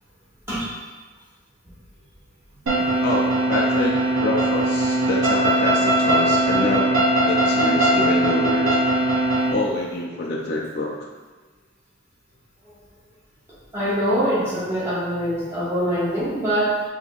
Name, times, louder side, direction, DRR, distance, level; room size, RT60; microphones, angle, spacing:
sound 1, 2.7-9.5, right 1 dB, 75° right, 0.8 m, -20 dB
voice 1, 3.0-7.0 7.2-8.8 9.5-10.9, left 2 dB, 50° left, -2 dB, 0.4 m, -26 dB
voice 2, 13.7-16.8, equal, 10° right, -11 dB, 1.2 m, -23 dB
5.1 x 2.7 x 2.4 m, 1.3 s
head